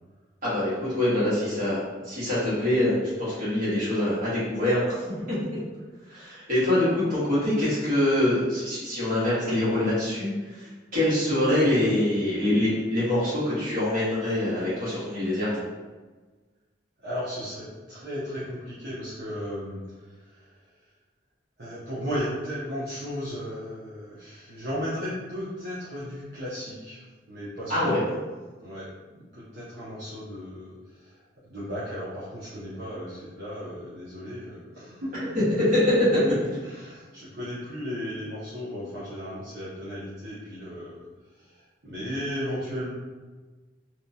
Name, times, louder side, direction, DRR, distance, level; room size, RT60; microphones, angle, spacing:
voice 1, 0.4-5.6 6.1-15.6 27.7-28.0 35.6-36.2, left 1 dB, 50° right, -10 dB, 1.4 m, -24 dB
voice 2, 17.0-20.6 21.6-27.9 28.6-35.6 35.9-36.3 36.6-41.0 41.3-42.9, equal, 65° right, -10 dB, 0.6 m, -35 dB
2.8 x 2.2 x 2.6 m, 1.3 s
head